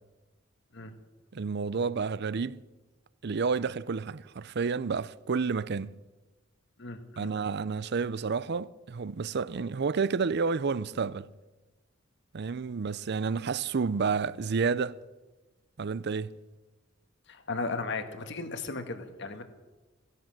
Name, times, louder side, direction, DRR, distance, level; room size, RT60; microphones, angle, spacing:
voice 1, 1.3-2.6 3.2-5.9 7.2-11.3 12.3-15.0 15.8-16.4, right 5 dB, 55° right, 0.5 m, -30 dB
voice 2, 6.8-7.3 17.3-19.4, left 3 dB, 60° left, 1.6 m, -36 dB
15.5 x 10.5 x 7.7 m
head